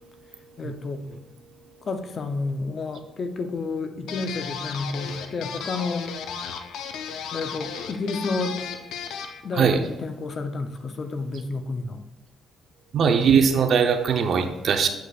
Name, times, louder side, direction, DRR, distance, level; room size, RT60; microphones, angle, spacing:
voice 1, 0.6-1.1 1.8-6.1 7.3-8.6 9.4-12.1, left 3 dB, 45° left, 8 dB, 0.7 m, -30 dB
sound 1, 4.1-9.4, left 7 dB, 85° left, 0.6 m, -35 dB
voice 2, 12.9-14.9, right 6 dB, 60° right, 6 dB, 0.8 m, -20 dB
8.3 x 8.0 x 2.4 m, 0.97 s
cardioid pair, 90°, 0 cm